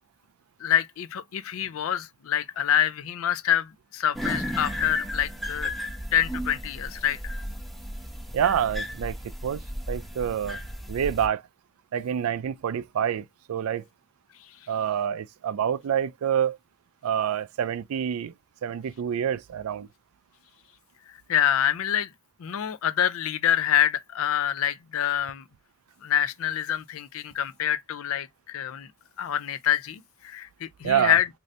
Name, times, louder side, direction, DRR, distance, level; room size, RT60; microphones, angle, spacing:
voice 1, 0.6-5.7 6.1-7.2 21.3-22.1 22.4-25.4 26.0-28.9 29.2-31.3, left 10 dB, 80° left, 0.4 m, -26 dB
sound 1, 4.1-11.3, equal, ahead, 0.6 m, -34 dB
voice 2, 8.3-9.2 9.4-9.6 9.9-10.6 10.9-11.4 11.9-13.8 14.7-16.6 17.0-18.3 18.6-19.9 30.8-31.2, right 9 dB, 85° right, 0.3 m, -27 dB
3.2 x 2.6 x 2.6 m
head